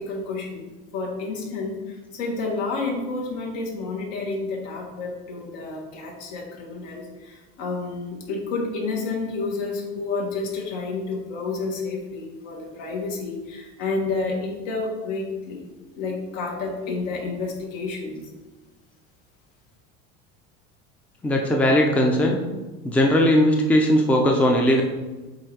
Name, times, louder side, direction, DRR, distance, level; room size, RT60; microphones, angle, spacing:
voice 1, 0.0-15.7 16.0-18.2, left 3 dB, 70° left, -1 dB, 1.8 m, -30 dB
voice 2, 21.2-22.4 22.8-24.8, equal, 5° left, 1 dB, 0.5 m, -18 dB
7.7 x 2.8 x 4.7 m, 1.2 s
cardioid pair, 140°, 31 cm